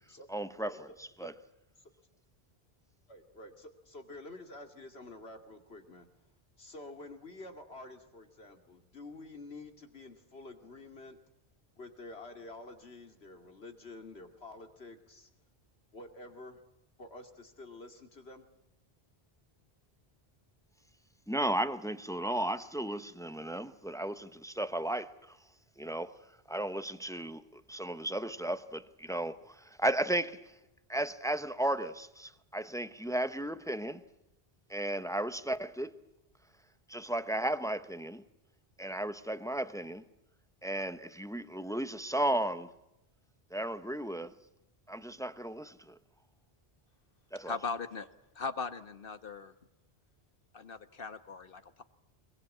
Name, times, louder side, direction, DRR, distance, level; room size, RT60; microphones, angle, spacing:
voice 1, 0.3-0.9 1.2-1.3 21.3-25.4 25.8-26.1 26.5-30.4 30.9-34.0 34.7-35.9 36.9-38.2 38.8-40.0 40.6-42.7 43.5-44.3 44.9-46.0 47.3-47.6, right 1 dB, 5° left, 0.8 m, -34 dB
voice 2, 3.1-6.3 6.6-11.2 11.8-15.3 15.9-16.6 17.0-18.5, left 2 dB, 90° left, 2.8 m, -49 dB
voice 3, 47.4-48.1 48.3-49.5 50.5-51.8, left 5 dB, 60° left, 1.4 m, -39 dB
23.5 x 22.0 x 8.5 m
omnidirectional pair, 1.0 m